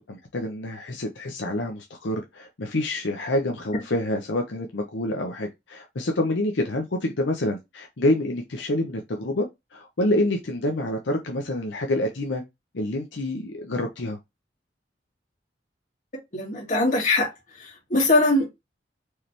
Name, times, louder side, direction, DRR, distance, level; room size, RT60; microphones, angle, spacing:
voice 1, 0.1-9.5 9.7-12.4 12.7-14.2, left 1 dB, 80° left, 0.8 m, -27 dB
voice 2, 16.3-17.3 17.6-18.5, left 2 dB, 45° left, 2.2 m, -21 dB
4.7 x 3.3 x 2.9 m
head